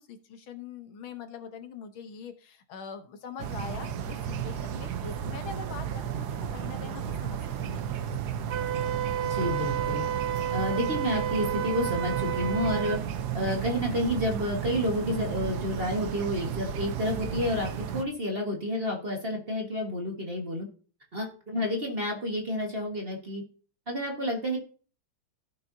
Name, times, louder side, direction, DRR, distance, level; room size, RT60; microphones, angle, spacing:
voice 1, 0.0-6.3 6.5-8.1, left 6 dB, 75° left, 8 dB, 1.7 m, -43 dB
sound 1, 3.4-18.0, right 9 dB, 65° right, 1.1 m, -33 dB
Wind instrument woodwind instrument, 8.5-13.0, right 9 dB, 85° right, 1.6 m, -31 dB
voice 2, 9.2-10.0 10.5-13.0 13.3-20.7 21.1-23.4 23.9-24.6, left 1 dB, 30° right, 0 dB, 1.5 m, -30 dB
16.0 x 5.7 x 2.7 m, 0.39 s
omnidirectional pair, 2.3 m